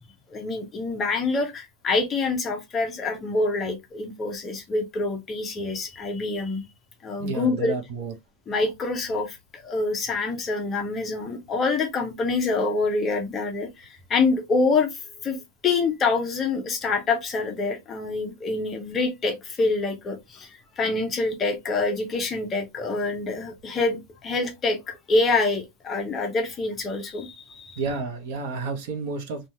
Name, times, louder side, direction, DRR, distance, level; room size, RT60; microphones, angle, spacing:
voice 1, 0.3-6.6 7.0-7.7 8.5-15.4 15.6-27.8, left 3 dB, 15° left, 0.6 m, -26 dB
voice 2, 7.2-8.1 27.8-29.5, right 4 dB, 50° right, 0.8 m, -30 dB
3.3 x 2.2 x 2.7 m
supercardioid pair, 170°, 0 cm